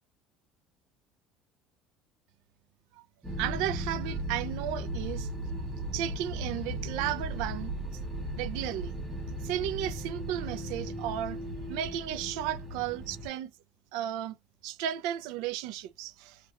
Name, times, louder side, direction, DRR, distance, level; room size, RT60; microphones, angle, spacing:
sound 1, 3.2-13.3, right 1 dB, 5° right, 0.8 m, -36 dB
voice 1, 3.4-5.3 5.9-7.7 8.3-8.9 9.4-11.4 11.7-13.5 13.9-14.4 14.6-16.4, right 11 dB, 75° right, 0.4 m, -34 dB
3.3 x 2.3 x 2.8 m
cardioid pair, 170°, 0 cm